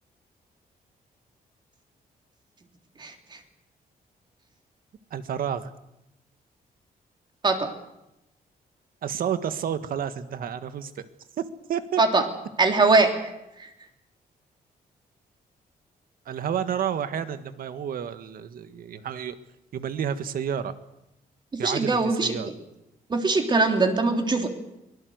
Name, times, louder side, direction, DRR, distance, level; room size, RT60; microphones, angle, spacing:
voice 1, 5.1-5.7 9.0-11.1 11.7-12.0 16.3-19.4 19.7-20.7 21.6-22.5, right 8 dB, 70° right, 11 dB, 1.7 m, -30 dB
voice 2, 12.6-13.2 13.6-13.7 21.5-22.3 23.1-24.5, right 3 dB, 30° right, 5 dB, 3.2 m, -21 dB
23.5 x 19.5 x 8.0 m, 0.89 s
cardioid pair, 150°, 16 cm